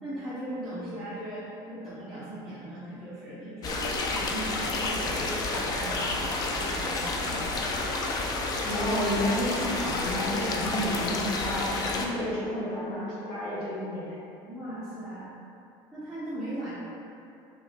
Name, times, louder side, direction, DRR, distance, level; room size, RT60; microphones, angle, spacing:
voice 1, 0.0-7.6 14.5-15.3 15.9-16.8, right 1 dB, ahead, -14 dB, 0.8 m, -38 dB
sound 1, 3.6-12.1, left 2 dB, 35° left, 0.4 m, -30 dB
voice 2, 8.6-14.1, left 1 dB, 75° left, -9 dB, 1.2 m, -30 dB
4.6 x 2.6 x 2.3 m, 2.7 s
supercardioid pair, 125°, 11 cm